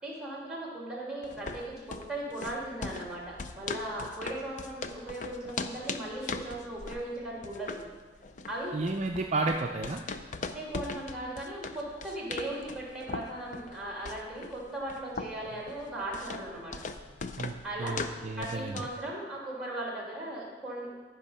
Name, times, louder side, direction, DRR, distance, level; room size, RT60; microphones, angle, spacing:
voice 1, 0.0-7.8 8.5-8.8 10.5-16.7 17.6-18.0 18.4-20.9, right 1 dB, 5° right, -4 dB, 2.7 m, -38 dB
sound 1, 1.2-19.0, left 4 dB, 45° left, 0.5 m, -40 dB
voice 2, 8.7-10.0 17.4-17.5 17.8-18.8, right 3 dB, 40° right, 2 dB, 0.5 m, -32 dB
14.0 x 5.3 x 5.6 m, 1.4 s
head